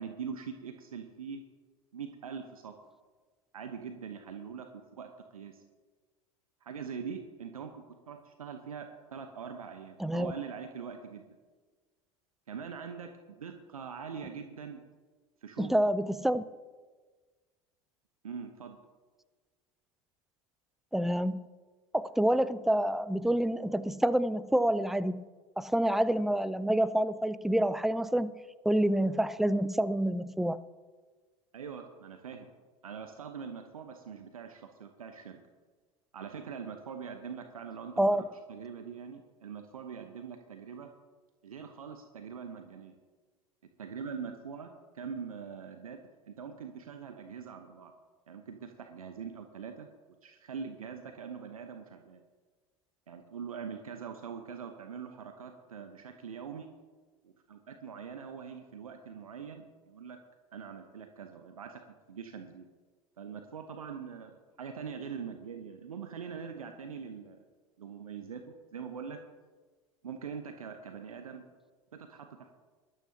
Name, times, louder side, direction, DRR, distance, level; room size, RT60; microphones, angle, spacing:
voice 1, 0.0-1.4 1.9-2.7 3.5-5.6 6.6-11.3 12.5-14.8 15.4-15.8 18.2-18.8 31.5-32.5 32.8-35.4 36.1-40.9 41.4-43.0 43.8-46.0 46.2-47.9 48.3-49.9 50.2-52.2 53.1-56.7 57.2-60.2 60.5-61.8 62.1-62.6 63.2-67.4 67.8-69.2 70.0-71.4 71.9-72.6, right 6 dB, 80° right, 6 dB, 1.0 m, -43 dB
voice 2, 10.0-10.3 15.6-16.4 20.9-21.4 21.9-25.2 25.6-28.3 28.6-30.6 38.0-38.2, right 1 dB, ahead, 14 dB, 0.5 m, -27 dB
19.5 x 12.5 x 2.8 m, 1.4 s
figure-of-eight pair, 75°, 18 cm